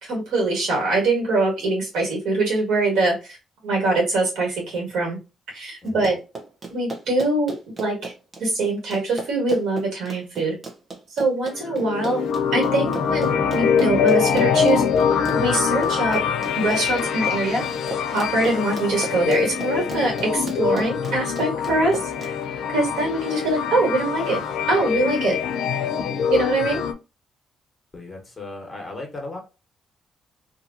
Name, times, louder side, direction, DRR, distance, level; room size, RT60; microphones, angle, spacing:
voice 1, 0.0-3.2 3.6-5.2 5.5-6.2 6.7-8.1 8.4-10.6 11.1-12.2 12.5-14.8 15.3-16.2 16.5-17.7 18.1-22.3 22.7-24.4 24.7-25.4 26.3-26.8, right 2 dB, 80° right, 1.6 m, -23 dB
Run, 5.9-22.3, right 3 dB, 30° right, 0.9 m, -35 dB
sound 1, 11.5-26.9, left 7 dB, 80° left, 0.4 m, -24 dB
voice 2, 27.9-29.4, left 2 dB, 25° left, 1.2 m, -36 dB
2.8 x 2.6 x 2.5 m
cardioid pair, 90°, 0 cm